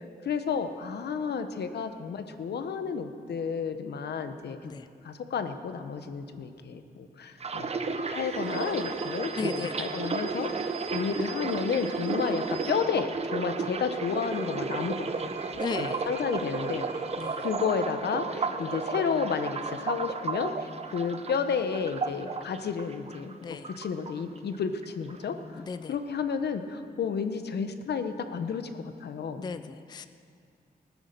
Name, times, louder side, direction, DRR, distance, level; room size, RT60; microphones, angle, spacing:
voice 1, 0.0-4.6 5.0-7.7 8.1-15.3 15.8-16.8 17.4-23.4 23.8-25.6 25.9-29.4, left 6 dB, 80° left, 9 dB, 1.0 m, -31 dB
sound 1, 7.4-23.4 23.6-24.6 24.8-25.2, right 4 dB, 40° right, 0.7 m, -33 dB
sound 2, 8.1-13.4 13.8-18.1, right 8 dB, 75° right, 0.9 m, -47 dB
voice 2, 9.4-9.9 15.6-16.0 17.2-17.5 23.4-23.7 25.5-25.9 29.4-30.1, left 5 dB, 25° left, 11 dB, 0.4 m, -36 dB
19.5 x 9.9 x 6.6 m, 2.3 s
wide cardioid pair, 170°, 17 cm